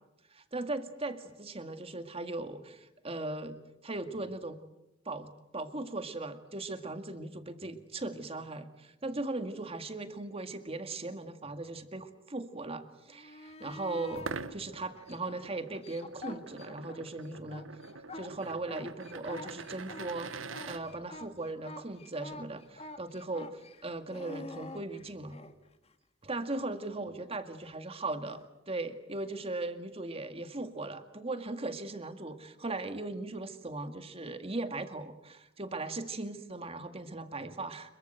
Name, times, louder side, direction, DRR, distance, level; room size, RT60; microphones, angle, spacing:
voice 1, 0.3-3.6 3.8-4.6 5.1-17.6 18.1-25.4 26.2-37.9, right 2 dB, 30° right, 9 dB, 2.0 m, -38 dB
sound 1, 13.1-14.3 14.9-17.0 17.3-25.5 28.3-28.4, left 2 dB, 30° left, 1.9 m, -47 dB
sound 2, 14.1-20.8, right 4 dB, 85° right, 1.3 m, -44 dB
26.5 x 23.0 x 7.9 m, 0.90 s
head